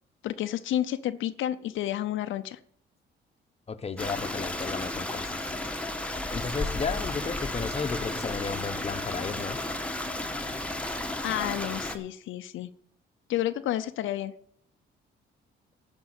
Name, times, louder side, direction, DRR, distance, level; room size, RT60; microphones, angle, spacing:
voice 1, 0.2-2.6 11.2-12.7 13.3-14.3, left 12 dB, 80° left, 11 dB, 0.6 m, -30 dB
voice 2, 3.7-5.4 6.3-9.6, left 5 dB, 30° left, 9 dB, 1.0 m, -34 dB
Stream, 4.0-12.0, left 2 dB, 5° left, 1.4 m, -33 dB
12.5 x 5.3 x 8.9 m, 0.64 s
cardioid pair, 90°, 20 cm